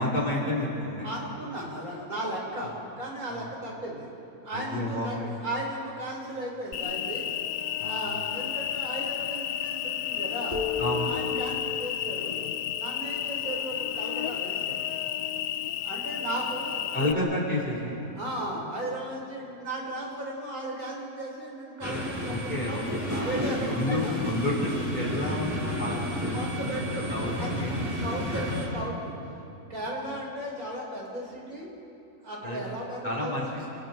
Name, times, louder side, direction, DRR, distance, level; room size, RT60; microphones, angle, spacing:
voice 1, 0.0-1.1 3.3-3.6 4.5-5.4 7.8-8.1 10.8-11.4 16.9-18.2 22.2-28.1 29.3-29.4 32.4-32.6 33.0-33.7, left 1 dB, 30° left, -4 dB, 4.7 m, -31 dB
voice 2, 1.0-4.1 4.4-7.3 7.8-10.6 11.1-12.4 12.7-14.8 15.8-17.2 18.1-22.8 23.2-24.2 26.3-27.1 27.4-29.1 29.7-31.7 32.2-33.6, right 1 dB, 70° right, -2 dB, 5.5 m, -36 dB
Cricket, 6.7-17.1, left 10 dB, 85° left, 1.2 m, -32 dB
sound 1, 10.5-14.0, left 5 dB, 45° left, 3.0 m, -35 dB
sound 2, 21.8-28.7, left 1 dB, 10° right, 7.0 m, -31 dB
29.0 x 28.5 x 4.6 m, 2.8 s
omnidirectional pair, 1.6 m